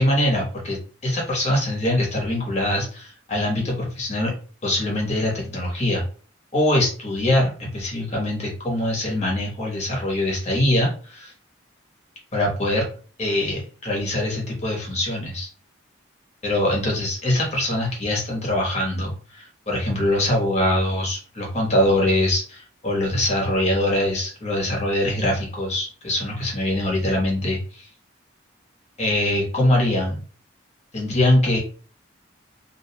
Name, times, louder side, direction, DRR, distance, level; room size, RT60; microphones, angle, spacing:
voice 1, 0.0-4.3 4.6-6.0 6.5-11.3 12.3-12.9 13.2-15.5 16.4-27.9 29.0-30.2 30.9-31.6, left 1 dB, 35° left, -2 dB, 1.0 m, -23 dB
2.4 x 2.2 x 2.8 m, 0.39 s
head